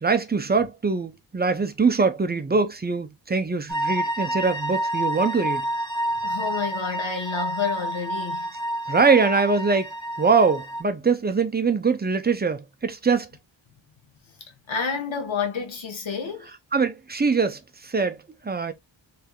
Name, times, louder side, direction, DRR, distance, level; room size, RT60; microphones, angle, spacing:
voice 1, 0.0-5.6 8.9-9.9 10.2-13.3 16.7-18.7, right 4 dB, 20° right, 0.5 m, -23 dB
sound 1, 3.7-10.8, right 1 dB, 10° left, 1.3 m, -29 dB
voice 2, 6.1-8.5 14.5-16.5, left 5 dB, 90° left, 1.3 m, -29 dB
3.3 x 3.3 x 2.2 m
wide cardioid pair, 110°, 45 cm